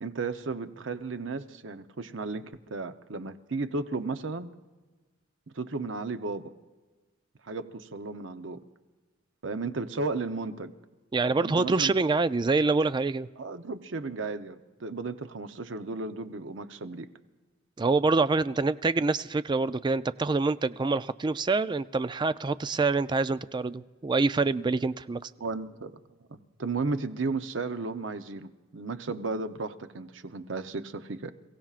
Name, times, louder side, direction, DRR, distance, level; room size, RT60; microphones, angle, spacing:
voice 1, 0.0-4.5 5.5-6.5 7.4-8.6 9.4-10.7 11.4-11.9 13.4-17.1 25.4-25.9 26.3-31.3, right 3 dB, 80° right, 9 dB, 0.8 m, -34 dB
voice 2, 11.1-13.3 17.8-25.3, right 3 dB, 25° right, 14 dB, 0.3 m, -26 dB
28.5 x 16.5 x 2.5 m, 1.3 s
head